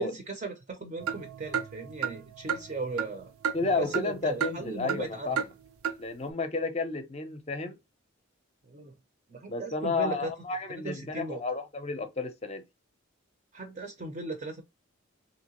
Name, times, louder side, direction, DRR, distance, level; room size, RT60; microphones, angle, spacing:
voice 1, 0.0-3.3 3.6-5.4 8.6-8.9 9.3-11.4 13.5-14.6, right 3 dB, 35° right, 0.5 m, -37 dB
sound 1, 1.0-4.1 4.4-5.1 5.4-5.5 5.8-6.0, right 7 dB, 90° right, 0.6 m, -33 dB
voice 2, 3.5-5.4 6.0-7.8 9.5-12.6, left 3 dB, 30° left, 0.5 m, -32 dB
3.0 x 2.8 x 2.8 m
head